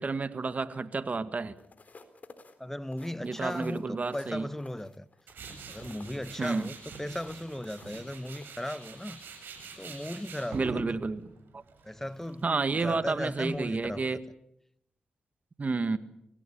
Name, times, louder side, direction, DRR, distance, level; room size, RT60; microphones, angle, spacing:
voice 1, 0.0-1.5 3.2-4.5 6.4-6.7 10.5-11.6 12.4-14.2 15.6-16.0, right 4 dB, 45° right, 1.8 m, -31 dB
sound 1, 1.5-9.7 10.2-10.4, left 3 dB, 50° left, 3.8 m, -55 dB
voice 2, 2.6-5.1 5.7-9.2 9.8-10.8 11.8-12.5 12.7-14.1, left 1 dB, 10° left, 1.1 m, -37 dB
Tools, 5.3-14.1, right 4 dB, 80° right, 7.9 m, -46 dB
25.0 x 17.0 x 8.7 m
supercardioid pair, 45°, 3 cm